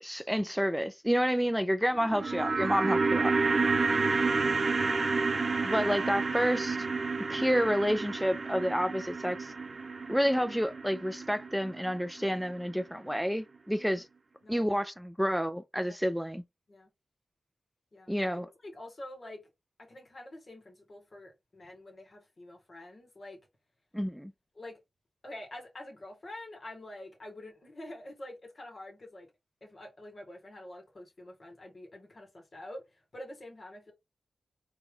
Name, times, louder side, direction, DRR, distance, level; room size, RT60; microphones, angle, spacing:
voice 1, 0.0-3.3 5.6-6.8 7.3-9.5 10.1-14.1 14.5-16.4 18.1-18.5 23.9-24.3, equal, ahead, 0.4 m, -29 dB
sound 1, 1.9-12.2 12.5-12.6, right 4 dB, 50° right, 0.6 m, -30 dB
voice 2, 3.3-5.1 13.7-14.0 14.4-14.6 15.8-16.0 16.7-16.9 17.9-19.4 19.8-23.4 24.5-24.8 25.2-29.3 29.6-32.8 33.1-33.9, left 1 dB, 55° left, 1.7 m, -47 dB
4.1 x 2.2 x 3.7 m
cardioid pair, 55°, 0 cm